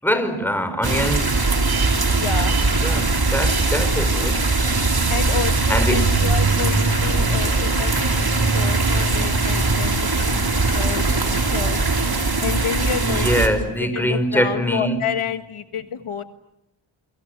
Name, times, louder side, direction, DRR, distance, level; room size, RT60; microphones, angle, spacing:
voice 1, 0.0-1.5 2.4-2.6 2.8-4.9 5.7-6.2 7.4-7.8 12.8-15.0, equal, 5° left, 4.8 m, -24 dB
sound 1, 0.8-13.5, right 3 dB, 50° right, 4.3 m, -20 dB
voice 2, 2.2-2.6 5.1-11.8 12.4-13.3 13.8-16.2, left 7 dB, 80° left, 1.7 m, -29 dB
29.5 x 24.5 x 8.0 m
wide cardioid pair, 65°, 49 cm